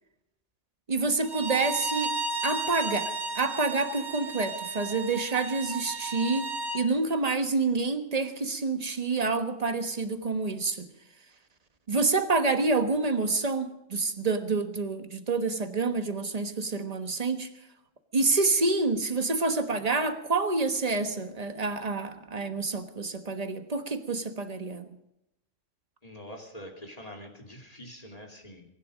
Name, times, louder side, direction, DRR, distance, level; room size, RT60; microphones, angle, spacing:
voice 1, 0.9-2.1 2.4-6.5 6.7-10.9 11.9-17.5 18.1-24.9, right 3 dB, 30° right, 8 dB, 1.3 m, -28 dB
Bowed string instrument, 1.2-6.8, right 3 dB, 60° right, 2.4 m, -33 dB
voice 2, 26.0-28.6, equal, 30° left, 2 dB, 2.8 m, -45 dB
24.0 x 11.0 x 5.1 m, 0.85 s
omnidirectional pair, 1.3 m